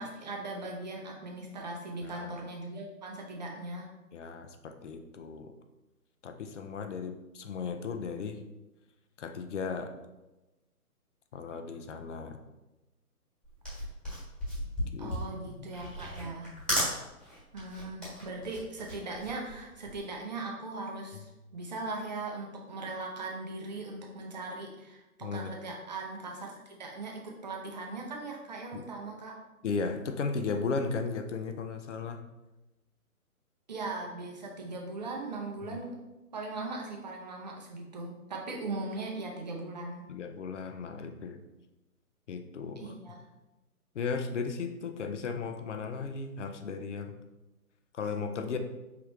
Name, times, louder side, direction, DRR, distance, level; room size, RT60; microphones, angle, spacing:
voice 1, 0.0-3.9 15.0-16.5 17.5-29.4 33.7-36.0 36.3-40.1 42.8-43.2, right 2 dB, 30° right, 0 dB, 0.6 m, -39 dB
voice 2, 4.1-5.5 6.2-8.4 9.2-9.9 11.3-12.4 14.9-15.2 15.5-15.7 25.2-25.5 28.7-28.8 29.6-32.2 35.7-35.8 40.1-41.4 42.3-42.9 43.9-47.2 47.9-48.6, left 5 dB, 50° left, 7 dB, 0.5 m, -36 dB
sound 1, 13.4-20.1, equal, ahead, 1.5 m, -35 dB
4.9 x 3.5 x 3.0 m, 1.1 s
hypercardioid pair, 150°, 46 cm